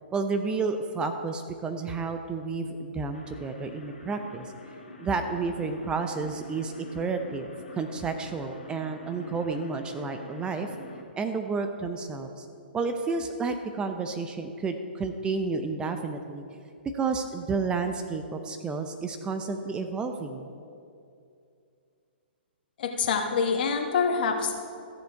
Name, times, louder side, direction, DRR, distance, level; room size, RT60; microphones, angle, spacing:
voice 1, 0.1-4.5 5.0-7.5 7.8-10.7 11.2-12.5 12.7-16.4 16.9-20.5, right 4 dB, 15° right, 6 dB, 0.6 m, -31 dB
sound 1, 3.1-11.0, left 2 dB, 80° left, 1.8 m, -47 dB
voice 2, 22.8-24.6, left 5 dB, 55° left, 4 dB, 1.4 m, -26 dB
14.0 x 6.9 x 4.6 m, 2.5 s
hypercardioid pair, 130°, 6 cm